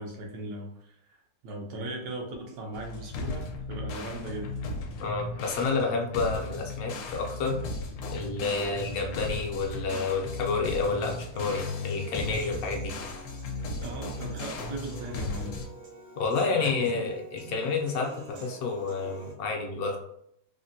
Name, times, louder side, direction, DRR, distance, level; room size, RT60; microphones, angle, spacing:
voice 1, 0.0-4.5 13.8-15.6 16.5-17.1 17.4-17.7, right 2 dB, 90° right, 0 dB, 1.3 m, -38 dB
sound 1, 2.7-15.7, left 2 dB, 90° left, 1.2 m, -36 dB
voice 2, 5.0-7.6 8.1-12.9 16.2-20.0, left 4 dB, 70° left, 1 dB, 1.0 m, -29 dB
Human voice / Piano, 11.3-19.3, right 2 dB, 60° right, 0.8 m, -47 dB
3.5 x 2.1 x 2.6 m, 0.74 s
omnidirectional pair, 1.7 m